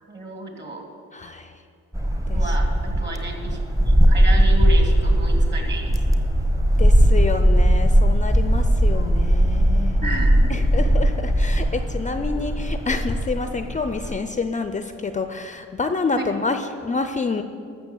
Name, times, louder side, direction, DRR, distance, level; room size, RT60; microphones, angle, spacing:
voice 1, 0.1-0.9 2.3-3.6 3.9-6.2 10.0-10.8 12.2-12.3 16.2-16.3, right 2 dB, 35° right, 2 dB, 2.6 m, -32 dB
voice 2, 1.1-1.5 2.3-2.4 6.8-10.2 10.5-17.4, left 4 dB, 25° left, 8 dB, 0.5 m, -28 dB
sound 1, 1.9-14.2, equal, 10° right, 1.0 m, -19 dB
13.0 x 6.8 x 7.2 m, 2.4 s
cardioid pair, 90°, 30 cm